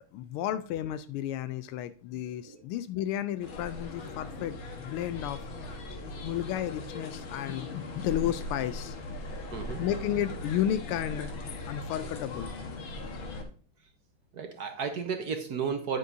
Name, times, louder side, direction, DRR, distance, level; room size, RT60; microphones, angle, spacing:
voice 1, 0.1-5.5 6.2-9.0 9.8-11.3 11.7-12.8, left 11 dB, 90° left, 1.5 m, -33 dB
sound 1, 3.4-13.4, left 2 dB, 70° left, 2.1 m, -39 dB
voice 2, 14.3-16.0, right 6 dB, 55° right, 1.3 m, -33 dB
9.5 x 9.2 x 2.7 m
omnidirectional pair, 2.3 m